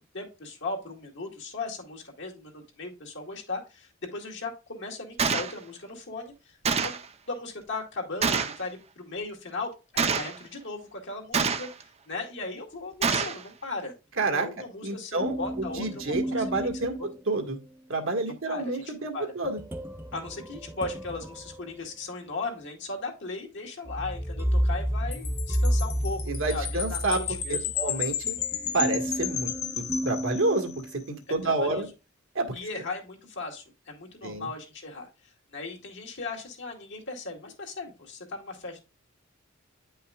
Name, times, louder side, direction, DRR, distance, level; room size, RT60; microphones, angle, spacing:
voice 1, 0.1-6.6 6.8-7.0 7.3-13.9 14.2-16.7 17.0-17.1 18.3-18.8 19.1-19.3 20.1-27.7 31.3-31.9 32.5-38.8, left 3 dB, 60° left, 1 dB, 2.2 m, -37 dB
Gunshot gunfire, 5.2-5.5 6.7-7.1 8.2-8.6 10.0-10.4 11.3-11.8 13.0-13.4, right 5 dB, 30° right, 0.7 m, -26 dB
voice 2, 14.2-14.5 14.8-17.0 17.3-17.6 17.9-19.6 26.3-27.2 27.5-28.4 28.7-31.9 32.3-32.5 34.2-34.5, right 2 dB, 70° right, 5 dB, 1.7 m, -29 dB
sound 1, 15.2-17.8 19.4-22.4 23.8-31.2, equal, 10° right, 1.0 m, -32 dB
Wind chime, 25.1-30.8, left 9 dB, 85° left, 1.0 m, -33 dB
9.6 x 5.6 x 2.3 m, 0.29 s
head